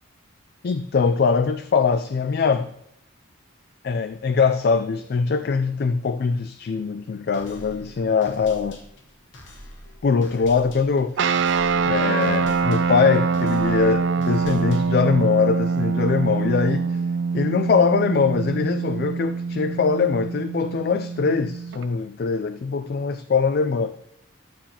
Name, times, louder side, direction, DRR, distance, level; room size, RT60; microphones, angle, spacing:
voice 1, 0.6-2.7 3.8-8.8 10.0-11.4 11.8-17.0 17.3-24.0, left 5 dB, 50° left, 0.3 m, -22 dB
sound 1, 7.3-15.2, left 1 dB, 65° left, 1.5 m, -45 dB
sound 2, 11.2-21.8, right 5 dB, 65° right, 0.4 m, -24 dB
11.5 x 6.9 x 2.9 m
head